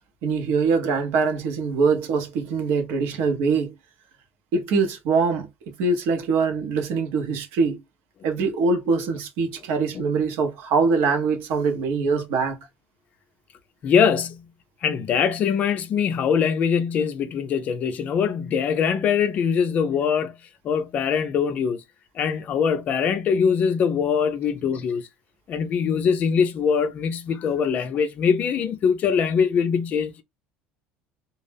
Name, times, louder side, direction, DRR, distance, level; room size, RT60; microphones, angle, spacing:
voice 1, 0.2-3.7 4.5-7.8 8.2-12.6, right 4 dB, 70° right, 0.8 m, -23 dB
voice 2, 13.8-14.5 14.8-20.4 20.6-21.8 22.1-25.1 25.5-30.2, left 6 dB, 40° left, 0.4 m, -22 dB
2.3 x 2.0 x 3.3 m
cardioid pair, 140°, 4 cm